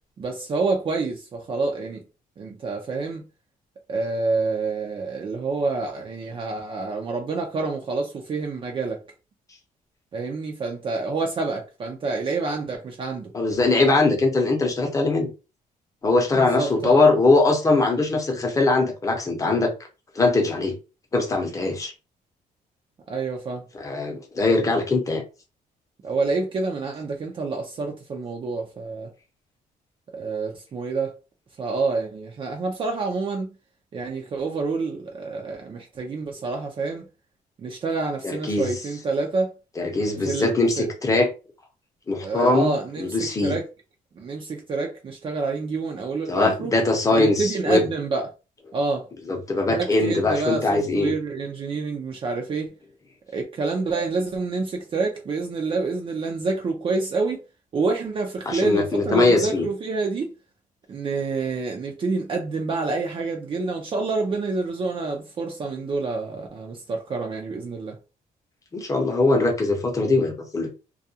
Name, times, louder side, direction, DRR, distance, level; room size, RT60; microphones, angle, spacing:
voice 1, 0.2-2.0 2.4-3.3 3.9-9.0 10.1-13.3 16.3-17.1 18.1-18.2 23.1-23.6 26.0-29.1 30.1-31.1 31.6-33.5 33.9-37.1 37.6-39.5 40.2-40.9 42.2-43.7 44.2-46.7 47.1-48.3 48.7-49.1 49.7-52.7 53.3-57.4 57.7-60.3 60.9-68.0, right 3 dB, 35° right, 0.5 m, -28 dB
voice 2, 13.3-15.3 16.0-19.7 20.1-20.7 21.1-21.9 23.7-25.2 38.2-38.7 39.8-41.3 42.1-43.6 46.3-47.8 49.3-51.1 58.5-59.7 68.7-70.7, left 3 dB, 20° left, 0.8 m, -21 dB
2.3 x 2.2 x 2.7 m
cardioid pair, 130°, 15 cm